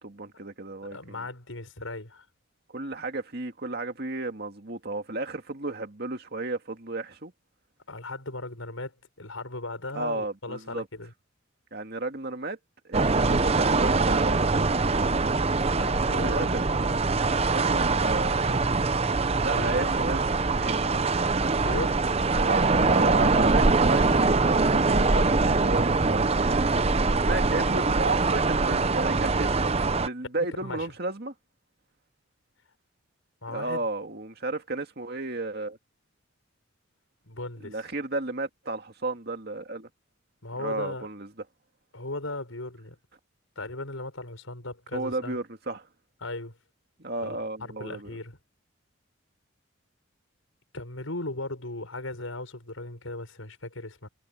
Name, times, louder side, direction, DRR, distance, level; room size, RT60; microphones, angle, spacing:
voice 1, 0.0-1.3 2.7-7.3 9.9-10.9 11.7-12.6 12.8-14.9 15.8-16.6 17.5-18.4 19.4-20.9 22.4-22.6 22.9-26.3 27.2-31.3 33.5-35.8 37.6-39.9 40.6-41.3 44.9-45.9 47.0-48.2, right 2 dB, 50° right, 2.2 m, -33 dB
voice 2, 0.9-2.3 7.9-11.1 15.8-16.5 19.5-19.9 21.6-22.1 30.4-30.9 33.4-33.9 37.3-37.8 40.4-41.1 41.9-43.0 43.6-45.4 46.2-46.6 47.2-47.4 47.7-48.4 50.7-54.1, left 2 dB, 85° left, 5.7 m, -37 dB
sound 1, 12.9-30.1, right 3 dB, 30° right, 0.7 m, -23 dB
head